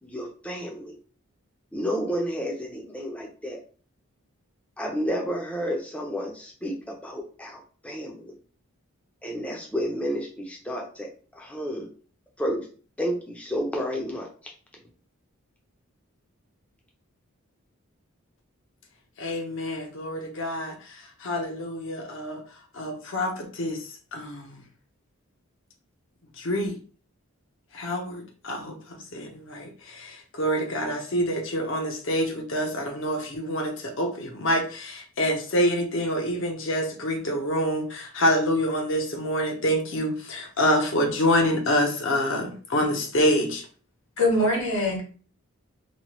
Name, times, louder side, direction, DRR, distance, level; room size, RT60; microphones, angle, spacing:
voice 1, 0.0-0.9 1.7-3.6 4.8-8.3 9.2-11.9 12.4-12.7 13.0-14.3, equal, 5° left, 0 dB, 0.5 m, -31 dB
voice 2, 19.2-20.7 21.2-22.4 22.7-23.8 24.1-24.6 26.4-26.8 27.7-28.8 29.1-43.6, equal, 55° left, 2 dB, 0.6 m, -26 dB
voice 3, 44.2-45.0, left 1 dB, 75° left, -3 dB, 1.4 m, -23 dB
2.9 x 2.2 x 2.9 m, 0.41 s
head